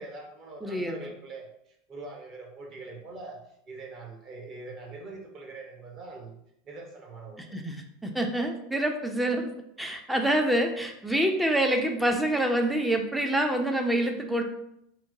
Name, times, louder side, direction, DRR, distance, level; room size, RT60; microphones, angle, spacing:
voice 1, 0.0-1.5 1.9-3.4 3.7-6.4 6.6-7.6, right 3 dB, 35° right, 1 dB, 0.8 m, -43 dB
voice 2, 0.6-0.9 7.5-9.5 9.8-14.4, right 1 dB, 5° right, 3 dB, 0.4 m, -26 dB
2.9 x 2.0 x 3.6 m, 0.77 s
figure-of-eight pair, 80°, 0 cm